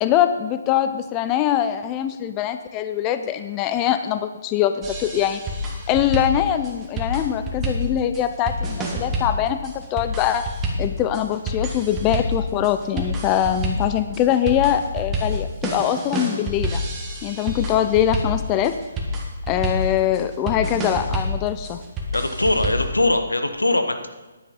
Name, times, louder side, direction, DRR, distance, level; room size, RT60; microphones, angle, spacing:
voice 1, 0.0-5.4 5.9-10.5 10.8-16.8 17.2-18.8 19.5-21.8, left 10 dB, 20° left, 10 dB, 0.5 m, -22 dB
sound 1, 4.8-23.0, equal, 15° right, 1.5 m, -28 dB
voice 2, 22.1-24.1, left 2 dB, 85° left, 7 dB, 1.2 m, -21 dB
10.5 x 9.1 x 5.3 m, 1.2 s
figure-of-eight pair, 140°, 0 cm